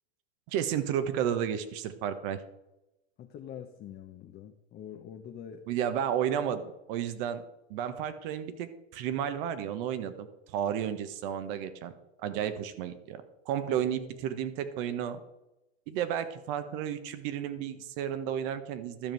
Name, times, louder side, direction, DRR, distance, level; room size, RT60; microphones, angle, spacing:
voice 1, 0.5-2.4 5.7-7.4 7.7-11.9 12.2-15.2 15.9-19.1, right 9 dB, 55° right, 11 dB, 1.4 m, -32 dB
voice 2, 3.2-5.7, left 9 dB, 30° left, 4 dB, 1.0 m, -45 dB
12.5 x 5.2 x 7.8 m, 0.94 s
supercardioid pair, 130°, 32 cm